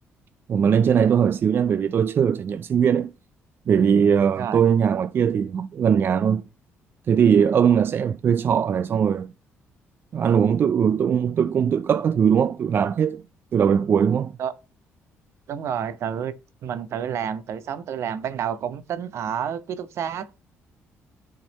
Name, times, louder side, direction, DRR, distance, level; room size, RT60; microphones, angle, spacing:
voice 1, 0.5-3.1 3.7-6.4 7.1-9.3 10.1-13.2 13.5-14.3, right 7 dB, 45° right, 0.3 m, -20 dB
voice 2, 15.5-16.3 16.6-20.3, right 8 dB, 65° right, 0.8 m, -29 dB
10.5 x 3.8 x 4.1 m
cardioid pair, 100°, 5 cm